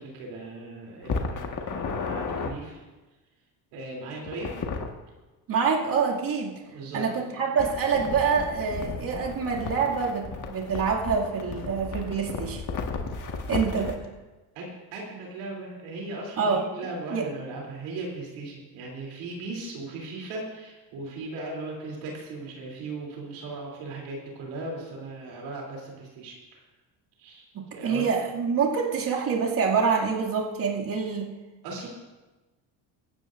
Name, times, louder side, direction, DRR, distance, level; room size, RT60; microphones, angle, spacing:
voice 1, 0.0-2.8 3.7-4.5 6.7-7.2 13.8-13.9 14.5-26.6 27.2-27.5 27.7-28.1 31.6-31.9, right 2 dB, 90° right, -2 dB, 3.3 m, -38 dB
sound 1, 1.0-2.5 4.2-4.9 7.6-14.0, left 4 dB, 45° left, 1.7 m, -34 dB
voice 2, 5.5-6.6 6.9-12.6 13.5-14.0 16.4-16.7 17.1-17.2 27.5-31.3, right 5 dB, 50° right, -3 dB, 2.4 m, -26 dB
24.0 x 9.2 x 2.6 m, 1.2 s
supercardioid pair, 85°, 44 cm